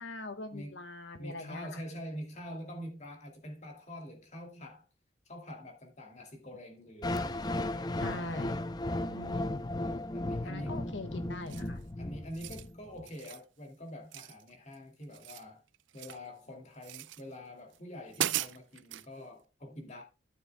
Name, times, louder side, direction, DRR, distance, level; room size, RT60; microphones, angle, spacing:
voice 1, 0.0-1.8 8.0-8.6 9.1-9.7 10.4-11.8, left 2 dB, 80° left, 1.6 m, -42 dB
voice 2, 1.2-4.9 5.3-8.5 10.1-10.8 12.0-15.6 15.9-20.0, equal, 35° left, 2.3 m, -45 dB
sound 1, 7.0-13.0, left 1 dB, 20° left, 0.5 m, -35 dB
sound 2, 11.5-11.8 12.2-12.7 13.1-13.4 14.1-14.8 15.0-16.3 16.8-17.2 17.7-17.8 18.1-19.1, right 13 dB, 75° right, 0.4 m, -38 dB
13.0 x 7.0 x 2.2 m
head